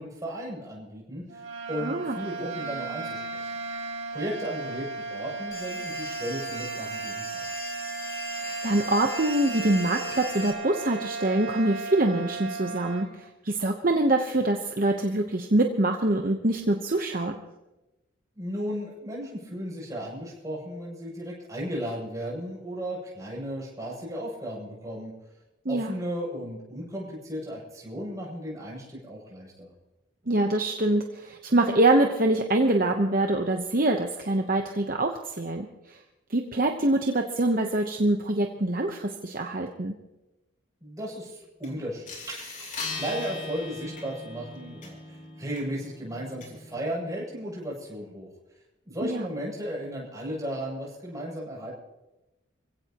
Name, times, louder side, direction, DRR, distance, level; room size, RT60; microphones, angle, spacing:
voice 1, 0.0-1.4 1.7-3.5 4.1-7.7 18.4-25.1 25.7-29.7 40.8-48.3 48.8-51.7, equal, 15° right, -5 dB, 7.6 m, -35 dB
sound 1, 1.3-13.1, right 4 dB, 65° right, 2.5 m, -36 dB
voice 2, 1.8-2.2 8.4-17.3 25.6-25.9 30.3-36.0 36.3-39.9 49.0-49.3, right 2 dB, 40° right, 4 dB, 1.0 m, -25 dB
sound 2, 5.5-10.5, equal, 15° left, 4.9 m, -38 dB
sound 3, 41.6-41.7 42.1-47.0, left 3 dB, 40° left, 4.1 m, -40 dB
26.5 x 16.5 x 3.0 m, 0.99 s
head